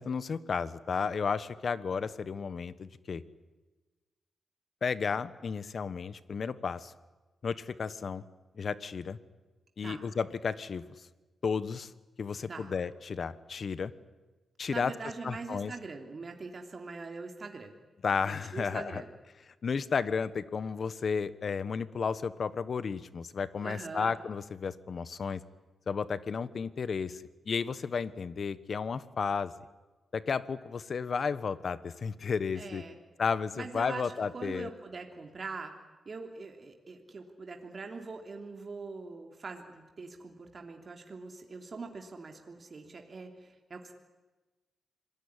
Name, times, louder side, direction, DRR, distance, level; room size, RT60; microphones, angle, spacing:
voice 1, 0.0-3.2 4.8-6.9 7.4-8.2 8.6-9.2 9.8-10.8 11.4-11.9 12.2-13.9 14.6-14.9 15.2-15.7 18.0-19.0 19.6-25.4 25.9-29.5 30.1-32.8 33.2-34.7, left 5 dB, 55° left, 15 dB, 1.2 m, -33 dB
voice 2, 14.7-17.7 18.3-19.1 23.6-24.1 32.5-33.0 33.6-35.7 36.0-43.9, right 4 dB, 45° right, 3 dB, 3.1 m, -43 dB
26.5 x 20.0 x 10.0 m, 1.2 s
cardioid pair, 80°, 0 cm